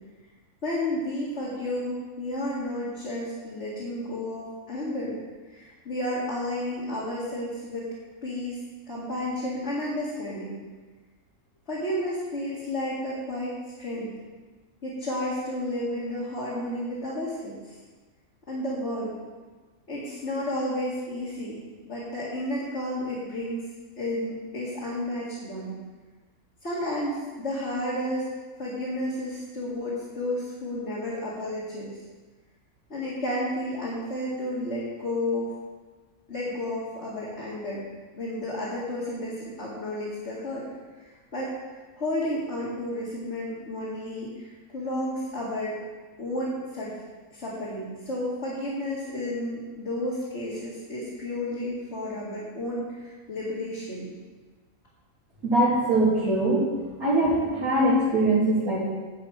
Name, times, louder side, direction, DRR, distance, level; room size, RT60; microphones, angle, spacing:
voice 1, 0.6-5.2 5.5-7.9 8.2-8.6 8.9-10.5 11.7-14.1 14.8-17.8 18.5-19.1 19.9-23.6 24.0-25.7 26.6-28.3 28.6-31.9 32.9-35.5 36.3-37.9 38.1-40.7 41.0-41.5 42.0-45.8 46.2-46.9 47.3-54.1, left 1 dB, 50° left, -8 dB, 2.6 m, -32 dB
voice 2, 55.4-56.7 57.0-58.8, right 1 dB, 75° right, -11 dB, 3.4 m, -22 dB
11.5 x 8.2 x 4.8 m, 1.3 s
omnidirectional pair, 1.5 m